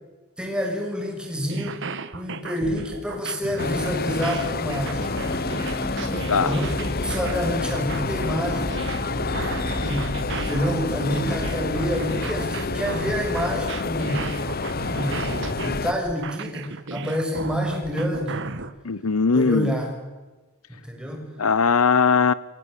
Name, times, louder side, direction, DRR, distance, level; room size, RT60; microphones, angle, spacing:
voice 1, 0.4-1.8 2.1-5.1 6.4-8.8 9.8-14.3 14.9-18.4 19.3-19.9 20.7-21.3, equal, 5° right, 7.0 m, -28 dB
sound 1, 1.4-18.7, right 4 dB, 55° right, 1.6 m, -35 dB
sound 2, 3.6-15.9, left 3 dB, 45° left, 1.0 m, -28 dB
sound 3, 4.9-14.5, equal, 25° left, 3.2 m, -36 dB
voice 2, 18.8-19.7 21.4-22.3, left 5 dB, 80° left, 0.9 m, -19 dB
29.0 x 23.5 x 8.4 m
head